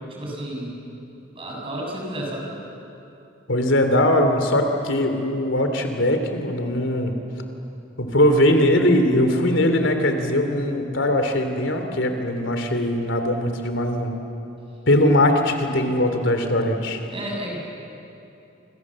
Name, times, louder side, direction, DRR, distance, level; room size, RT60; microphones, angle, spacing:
voice 1, 0.1-0.7 1.3-2.5 17.1-17.6, right 1 dB, 30° right, -2 dB, 7.2 m, -31 dB
voice 2, 3.5-7.1 8.0-14.1 14.9-17.0, left 1 dB, 85° left, 6 dB, 3.1 m, -20 dB
28.5 x 27.0 x 7.6 m, 2.8 s
head